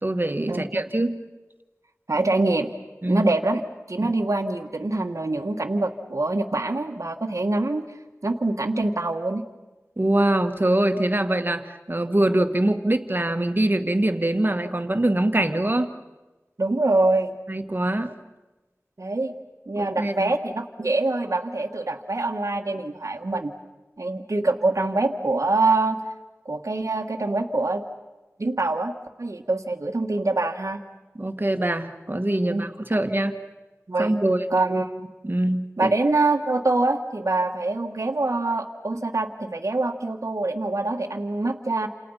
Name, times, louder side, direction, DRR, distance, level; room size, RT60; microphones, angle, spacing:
voice 1, 0.0-1.2 3.0-3.3 4.0-4.1 10.0-15.9 17.5-18.1 19.8-20.3 31.2-33.4 34.0-34.5 35.2-35.9, right 1 dB, 40° right, 7 dB, 1.9 m, -23 dB
voice 2, 2.1-2.7 3.1-3.6 3.9-7.8 8.2-9.4 16.6-17.3 19.0-19.3 19.7-23.5 24.0-26.0 26.4-27.8 28.4-30.8 32.4-32.7 33.9-34.1 34.5-35.1 35.8-41.9, right 2 dB, 75° right, 2 dB, 1.6 m, -24 dB
29.5 x 28.0 x 5.7 m, 1.1 s
wide cardioid pair, 50°, 5 cm